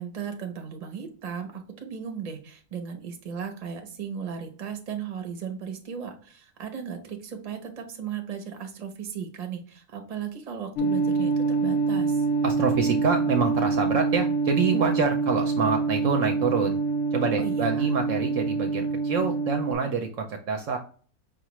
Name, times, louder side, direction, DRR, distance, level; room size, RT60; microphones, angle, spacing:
voice 1, 0.0-11.3 11.6-12.2 17.4-17.9, right 7 dB, 40° right, 5 dB, 0.6 m, -36 dB
sound 1, 10.8-19.7, right 4 dB, 65° left, 0.7 m, -26 dB
voice 2, 12.4-16.8 17.1-20.8, right 5 dB, 65° right, 4 dB, 0.8 m, -26 dB
5.5 x 2.4 x 2.9 m, 0.43 s
omnidirectional pair, 1.6 m